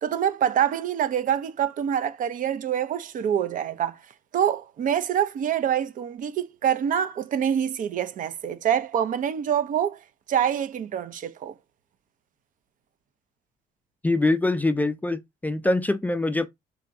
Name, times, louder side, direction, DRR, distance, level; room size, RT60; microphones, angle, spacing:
voice 1, 0.0-4.0 4.3-10.0 10.3-11.5, right 9 dB, 50° right, 0.6 m, -25 dB
voice 2, 14.0-16.5, left 2 dB, 10° left, 0.4 m, -24 dB
4.3 x 2.6 x 3.7 m
cardioid pair, 110°, 17 cm